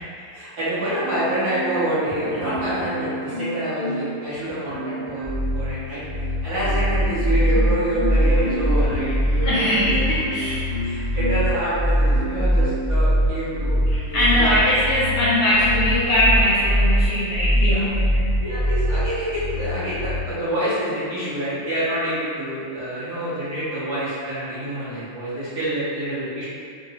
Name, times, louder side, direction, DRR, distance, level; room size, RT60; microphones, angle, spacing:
voice 1, 0.3-6.0 6.4-9.9 10.8-14.4 17.5-17.8 18.4-26.5, right 1 dB, 55° right, -12 dB, 1.3 m, -27 dB
Marimba xylophone, 1.0-1.9 2.4-4.2 4.7-5.6 6.1-11.5 12.0-12.9 13.5-13.7, right 1 dB, 15° left, 1.1 m, -32 dB
sound 1, 5.2-20.2, equal, 85° right, 0.5 m, -22 dB
voice 2, 9.4-10.8 13.9-18.3, left 1 dB, 75° left, -9 dB, 1.1 m, -21 dB
3.8 x 2.6 x 2.7 m, 2.3 s
omnidirectional pair, 2.4 m